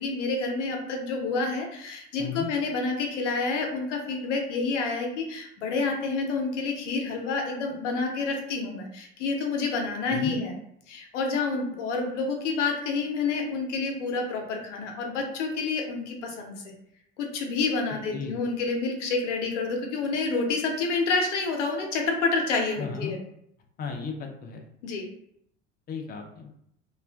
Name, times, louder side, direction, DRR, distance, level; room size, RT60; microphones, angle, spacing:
voice 1, 0.0-10.5 10.9-16.5 17.2-23.2 24.8-25.0, left 4 dB, 75° left, 2 dB, 0.7 m, -28 dB
voice 2, 2.2-2.5 10.1-10.4 18.1-18.4 22.8-23.2 23.8-24.7 25.9-26.5, left 5 dB, 25° left, 3 dB, 0.4 m, -35 dB
2.4 x 2.3 x 2.2 m, 0.73 s
figure-of-eight pair, 70°, 37 cm